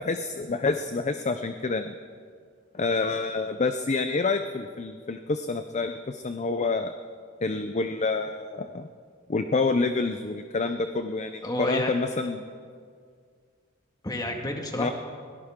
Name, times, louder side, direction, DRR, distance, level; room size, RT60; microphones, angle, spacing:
voice 1, 0.0-1.9 2.7-6.9 7.4-8.9 9.3-12.4 14.8-14.9, left 3 dB, 35° left, 8 dB, 0.6 m, -28 dB
voice 2, 11.4-11.9 14.0-14.9, left 1 dB, 20° left, 2 dB, 1.8 m, -30 dB
22.0 x 17.5 x 3.7 m, 2.1 s
head